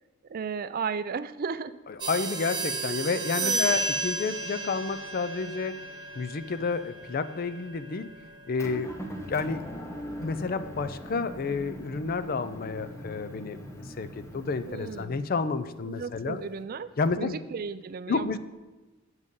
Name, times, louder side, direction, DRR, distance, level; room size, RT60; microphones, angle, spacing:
voice 1, 0.3-1.7 3.4-3.8 14.7-15.2 15.9-16.9 17.2-18.4, right 5 dB, 45° right, 14 dB, 0.4 m, -34 dB
voice 2, 2.0-5.8 6.2-8.1 8.5-8.9 9.2-9.6 10.2-16.4 17.0-17.4 18.1-18.4, left 4 dB, 45° left, 12 dB, 0.5 m, -30 dB
sound 1, 2.0-12.2, right 3 dB, 20° right, 1.0 m, -35 dB
Motor vehicle (road) / Engine, 8.6-15.0, equal, 15° left, 0.9 m, -41 dB
8.0 x 7.3 x 5.4 m, 1.2 s
head